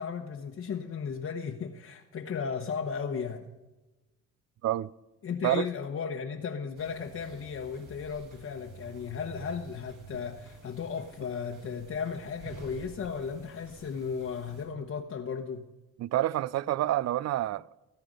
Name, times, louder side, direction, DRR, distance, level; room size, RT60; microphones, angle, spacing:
voice 1, 0.0-3.5 5.2-15.7, left 6 dB, 50° left, 1.1 m, -35 dB
sound 1, 6.7-14.6, right 2 dB, 75° right, 4.9 m, -50 dB
voice 2, 16.0-17.8, right 14 dB, 60° right, 0.5 m, -28 dB
17.5 x 10.5 x 5.3 m
cardioid pair, 90°, 30 cm